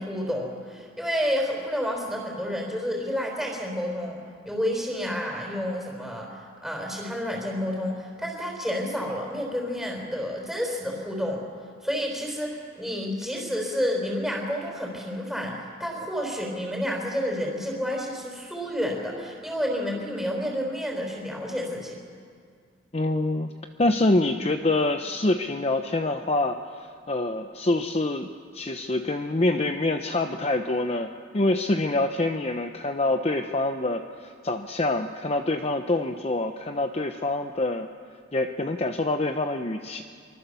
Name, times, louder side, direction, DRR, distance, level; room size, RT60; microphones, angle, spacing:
voice 1, 0.0-11.4 11.8-21.9, equal, ahead, -1 dB, 4.7 m, -30 dB
voice 2, 22.9-23.5 23.8-28.3 28.5-37.9 38.3-40.0, left 2 dB, 30° left, 6 dB, 0.8 m, -26 dB
25.0 x 24.5 x 7.0 m, 2.1 s
head